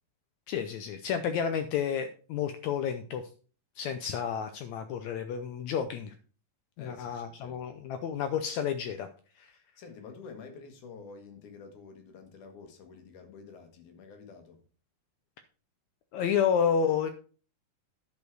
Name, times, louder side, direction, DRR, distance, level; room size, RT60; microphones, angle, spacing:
voice 1, 0.5-3.2 3.8-6.1 6.8-9.1 9.4-9.5 16.1-17.1, left 7 dB, 85° left, 9 dB, 1.6 m, -30 dB
voice 2, 6.8-7.8 9.8-14.6, left 5 dB, 65° left, 6 dB, 2.7 m, -49 dB
11.0 x 5.3 x 4.6 m, 0.39 s
omnidirectional pair, 4.0 m